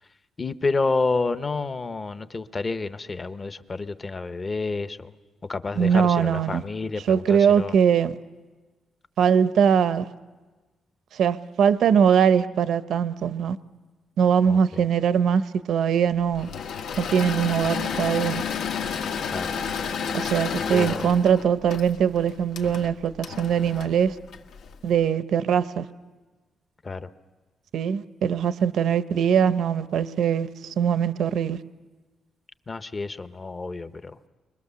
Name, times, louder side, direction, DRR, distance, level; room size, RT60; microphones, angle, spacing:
voice 1, 0.4-5.1 5.5-7.7 14.5-14.8 19.3-19.5 20.7-21.1 26.8-27.1 32.7-34.2, left 3 dB, 25° left, 0.7 m, -29 dB
voice 2, 5.8-6.6 7.1-8.1 9.2-10.0 11.1-13.6 14.2-15.4 15.7-16.5 17.0-18.4 20.1-24.2 24.8-25.9 27.7-31.6, right 7 dB, 70° right, 0.7 m, -21 dB
Engine / Mechanisms, 16.4-24.8, left 7 dB, 90° left, 1.4 m, -31 dB
30.0 x 23.5 x 6.9 m
wide cardioid pair, 170°, 0 cm